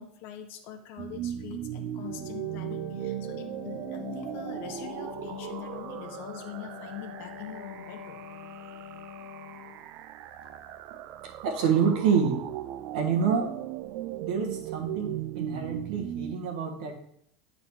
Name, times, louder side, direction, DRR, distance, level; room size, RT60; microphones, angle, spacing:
voice 1, 0.0-8.2, left 9 dB, 55° left, 5 dB, 1.0 m, -43 dB
sound 1, 1.0-16.4, right 12 dB, 50° right, 0.4 m, -38 dB
Wind instrument woodwind instrument, 1.9-9.9, left 9 dB, 85° left, 0.7 m, -45 dB
voice 2, 11.4-12.4 12.9-13.5 14.2-16.9, right 6 dB, 80° right, 2 dB, 1.3 m, -27 dB
9.0 x 3.9 x 3.5 m, 0.69 s
supercardioid pair, 125°, 4 cm